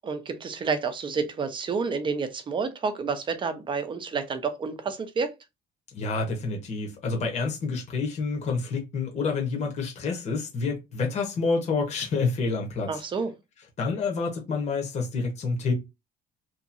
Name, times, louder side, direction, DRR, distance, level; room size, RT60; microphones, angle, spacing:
voice 1, 0.0-5.3 12.9-13.3, right 5 dB, 30° right, 0.6 m, -29 dB
voice 2, 5.9-13.0 13.8-15.7, left 4 dB, 40° left, 0.9 m, -28 dB
2.8 x 2.6 x 2.5 m
cardioid pair, 135°, 17 cm